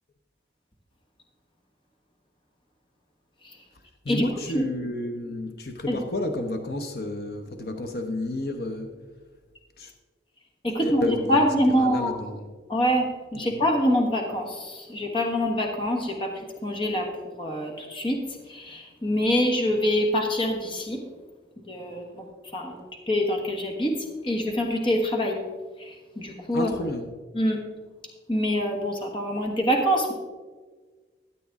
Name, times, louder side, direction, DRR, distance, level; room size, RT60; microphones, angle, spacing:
voice 1, 4.0-9.0 9.8-9.9 10.8-12.5 13.3-13.6 26.5-27.1, left 1 dB, 55° left, 5 dB, 0.8 m, -31 dB
voice 2, 10.6-12.2 12.7-17.1 17.4-21.0 21.7-22.2 22.5-25.4 25.8-26.7 27.3-27.6 28.3-30.1, equal, 30° left, 2 dB, 1.3 m, -25 dB
13.5 x 8.4 x 3.6 m, 1.4 s
head